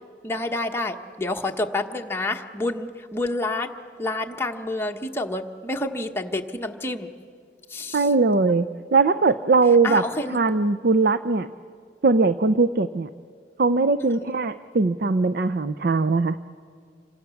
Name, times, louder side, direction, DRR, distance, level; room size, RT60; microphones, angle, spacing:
voice 1, 0.2-3.7 4.0-7.1 7.7-8.1 8.5-8.6 9.8-10.4 14.0-14.3, left 2 dB, 15° left, 2 dB, 1.2 m, -28 dB
voice 2, 7.9-8.7 8.9-10.0 10.3-11.5 12.0-13.1 13.6-16.4, right 3 dB, 55° right, 11 dB, 0.6 m, -20 dB
27.5 x 25.0 x 7.1 m, 2.1 s
head